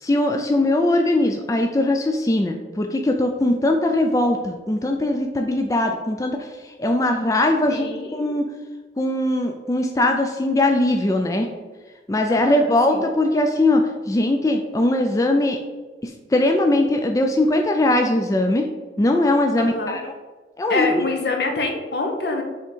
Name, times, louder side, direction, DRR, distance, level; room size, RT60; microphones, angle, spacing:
voice 1, 0.0-7.8 8.1-8.5 9.0-11.5 12.1-15.6 16.0-18.7 19.0-20.0 20.6-21.0, left 1 dB, 20° left, 4 dB, 0.3 m, -20 dB
voice 2, 3.4-3.8 7.7-8.2 12.3-13.1 19.6-20.0 20.7-22.4, left 3 dB, 70° left, 3 dB, 0.9 m, -26 dB
5.9 x 3.5 x 4.5 m, 1.3 s
head